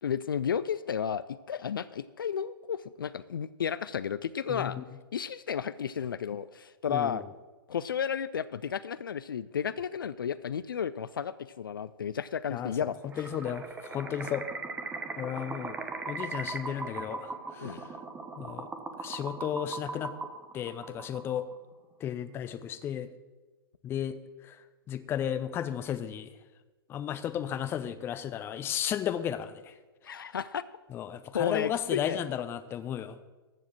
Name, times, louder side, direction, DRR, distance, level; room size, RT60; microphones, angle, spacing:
voice 1, 0.0-4.8 5.1-7.2 7.7-13.0 17.6-17.8 30.0-30.6 31.3-32.2, left 8 dB, 65° left, 16 dB, 0.4 m, -33 dB
voice 2, 4.5-4.9 6.9-7.2 12.5-12.9 13.2-14.4 15.2-15.8 16.1-18.0 18.4-18.7 19.0-20.1 20.5-21.5 22.0-23.1 23.8-26.3 26.9-29.8 30.9-33.2, left 9 dB, 20° left, 12 dB, 0.6 m, -34 dB
sound 1, 13.1-21.6, right 3 dB, 10° right, 1.0 m, -39 dB
14.0 x 4.8 x 7.6 m, 1.2 s
figure-of-eight pair, 110°, 12 cm